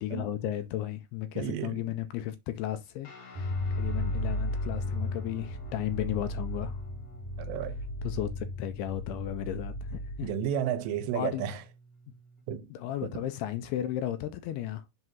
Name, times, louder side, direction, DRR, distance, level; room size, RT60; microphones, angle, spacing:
voice 1, 0.0-6.8 8.0-10.3 11.1-11.4 12.7-14.8, left 12 dB, 85° left, 2.4 m, -34 dB
voice 2, 1.4-1.8 7.4-7.8 10.2-11.6 12.5-12.7 13.0-13.1, right 9 dB, 85° right, 3.0 m, -32 dB
Guitar, 3.0-12.4, equal, 50° left, 2.0 m, -52 dB
sound 1, 3.4-10.3, left 1 dB, 65° right, 2.2 m, -34 dB
7.6 x 2.7 x 5.9 m
omnidirectional pair, 4.9 m